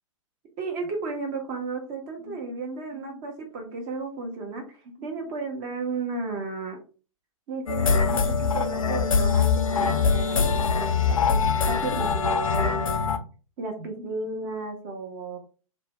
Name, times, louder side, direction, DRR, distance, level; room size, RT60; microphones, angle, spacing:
voice 1, 0.6-6.8 7.5-11.4 11.7-13.0 13.6-15.4, right 3 dB, 30° right, 2 dB, 0.7 m, -34 dB
sound 1, 7.7-13.2, left 5 dB, 70° left, 0.5 m, -23 dB
2.6 x 2.1 x 3.0 m, 0.36 s
figure-of-eight pair, 115°, 18 cm